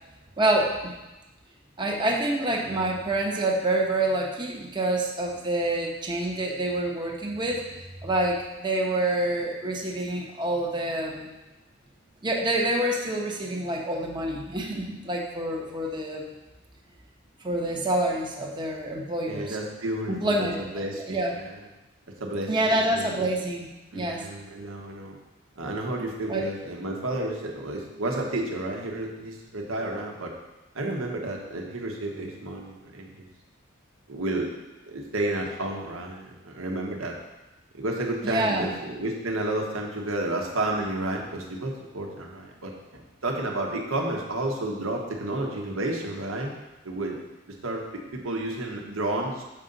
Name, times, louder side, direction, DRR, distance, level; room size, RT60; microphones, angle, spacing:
voice 1, 0.4-0.9 1.8-7.6 8.0-11.3 12.2-16.3 17.4-19.6 20.1-20.7 21.1-21.3 22.5-23.7 23.9-24.2 26.3-26.5 38.2-38.7, right 1 dB, 20° right, -1 dB, 0.9 m, -27 dB
voice 2, 19.2-21.6 22.2-23.3 23.9-25.2 25.6-30.3 30.7-33.2 34.1-34.5 34.9-37.2 37.7-46.5 46.8-47.2 47.5-49.4, right 1 dB, 80° right, 0 dB, 1.2 m, -31 dB
6.6 x 5.4 x 3.9 m, 1.0 s
head